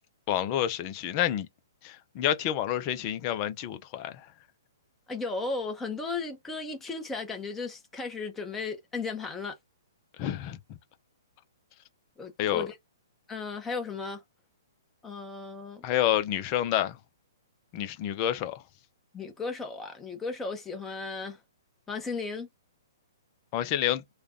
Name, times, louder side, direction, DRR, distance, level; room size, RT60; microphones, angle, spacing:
voice 1, 0.3-1.5 1.8-4.3 10.2-10.8 12.4-12.7 15.8-17.0 17.7-18.6 23.5-24.0, left 11 dB, 35° left, 0.6 m, -29 dB
voice 2, 5.1-9.6 12.2-12.7 13.3-14.2 15.0-15.8 19.1-21.4 21.9-22.5, left 4 dB, 10° left, 1.0 m, -35 dB
3.3 x 2.4 x 3.7 m
figure-of-eight pair, 120°, 2 cm